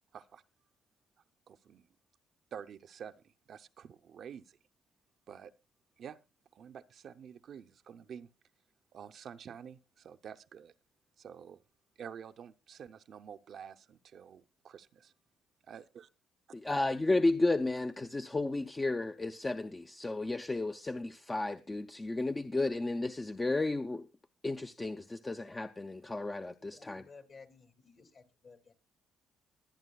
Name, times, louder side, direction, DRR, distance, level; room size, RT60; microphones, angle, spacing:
voice 1, 1.5-1.9 2.5-4.6 5.3-5.5 6.0-6.2 6.5-8.3 8.9-10.7 11.2-11.6 12.0-15.1 15.6-16.1, right 8 dB, 60° right, 0.6 m, -49 dB
voice 2, 16.5-24.1 24.4-27.0, left 2 dB, 20° left, 0.6 m, -33 dB
voice 3, 26.2-28.7, left 4 dB, 50° left, 2.3 m, -57 dB
23.5 x 9.0 x 2.3 m
cardioid pair, 90°, 0 cm